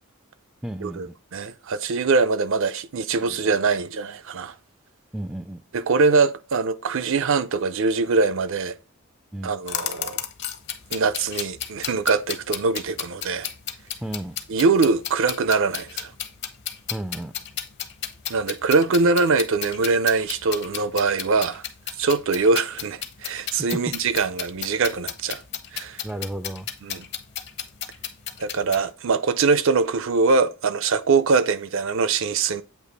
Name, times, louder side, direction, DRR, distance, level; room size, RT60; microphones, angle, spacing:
voice 1, 0.6-1.2 3.1-3.6 5.1-5.6 9.3-9.5 14.0-14.4 16.9-17.3 26.0-26.7, right 1 dB, 5° right, 0.3 m, -33 dB
voice 2, 1.3-4.5 5.7-8.8 9.4-10.2 10.9-13.5 14.5-16.1 18.3-21.7 22.0-25.4 25.7-26.0 26.8-27.0 28.4-32.6, right 4 dB, 65° right, 0.5 m, -22 dB
sound 1, 9.7-28.9, left 10 dB, 55° left, 0.7 m, -33 dB
8.3 x 2.9 x 3.9 m
head